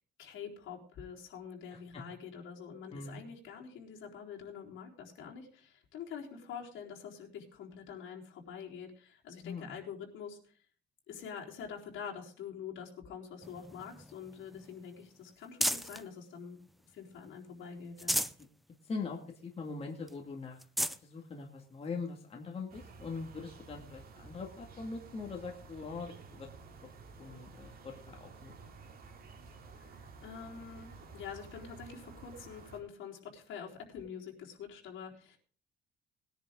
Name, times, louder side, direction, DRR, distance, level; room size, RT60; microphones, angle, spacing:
voice 1, 0.2-10.5 11.1-16.6 16.8-18.2 29.8-35.4, left 7 dB, 65° left, -1 dB, 4.1 m, -46 dB
voice 2, 1.7-2.0 2.9-3.2 9.4-9.7 18.8-20.6 21.0-26.5 27.2-28.5, left 4 dB, 30° left, 1 dB, 2.1 m, -42 dB
sound 1, 13.4-16.1 16.6-17.4 17.8-18.5 18.9-19.0 19.4-19.5 20.1-20.2 20.5-21.0 21.8-21.9 23.7-23.8, equal, ahead, 0.5 m, -36 dB
sound 2, 22.7-32.8, right 4 dB, 45° right, 2.8 m, -52 dB
20.0 x 10.5 x 3.7 m, 0.42 s
cardioid pair, 155°, 21 cm